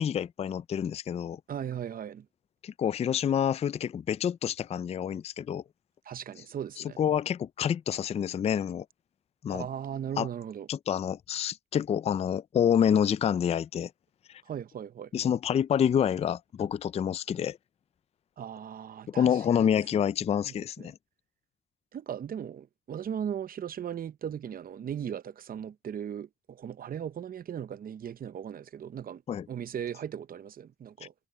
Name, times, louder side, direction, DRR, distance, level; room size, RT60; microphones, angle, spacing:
voice 1, 0.0-1.4 2.6-5.6 7.0-8.9 9.4-9.7 10.2-10.3 10.7-13.9 15.1-17.6 19.1-21.0 29.3-29.5, left 8 dB, 30° left, 0.3 m, -27 dB
voice 2, 1.5-2.3 6.1-7.0 9.5-10.7 14.5-15.1 18.4-19.7 20.4-20.9 21.9-29.2 29.5-31.1, right 9 dB, 45° right, 0.8 m, -38 dB
cardioid pair, 90°, 20 cm